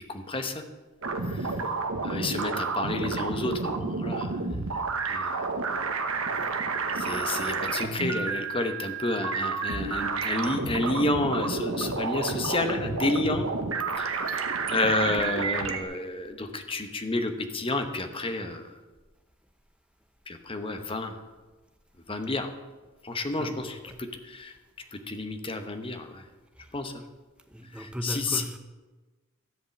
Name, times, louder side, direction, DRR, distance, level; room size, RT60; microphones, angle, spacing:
voice 1, 0.1-0.6 1.2-1.6 2.0-4.4 5.1-5.4 6.9-13.5 14.0-18.6 20.3-21.2 22.1-22.5 23.0-24.5 24.9-26.2 26.7-26.9 27.7-28.4, left 2 dB, 25° left, 7 dB, 1.0 m, -30 dB
sound 1, 1.0-15.8, right 4 dB, 80° right, 1.1 m, -30 dB
voice 2, 23.3-24.0 26.6-26.7 27.5-28.6, equal, 5° right, 6 dB, 0.9 m, -38 dB
13.5 x 5.2 x 8.3 m, 1.2 s
head